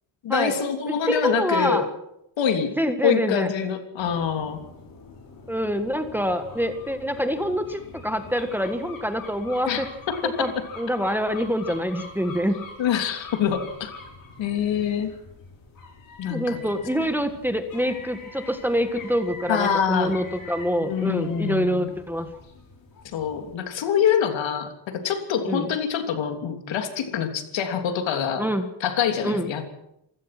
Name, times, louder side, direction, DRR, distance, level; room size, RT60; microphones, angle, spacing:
voice 1, 0.2-1.8 2.4-2.7 3.0-4.6 9.7-10.3 12.8-13.9 14.4-15.1 16.2-16.6 19.5-20.2 20.8-21.9 23.0-28.4 28.8-29.7, left 8 dB, 65° left, 6 dB, 3.1 m, -25 dB
voice 2, 0.9-1.9 2.8-3.5 5.5-9.9 10.2-12.6 16.3-22.3 25.5-25.7 28.4-28.7 29.2-29.5, equal, 5° right, 7 dB, 1.6 m, -26 dB
sound 1, 4.0-23.5, left 3 dB, 45° left, 6.5 m, -44 dB
27.0 x 16.5 x 6.0 m, 0.82 s
cardioid pair, 125°, 48 cm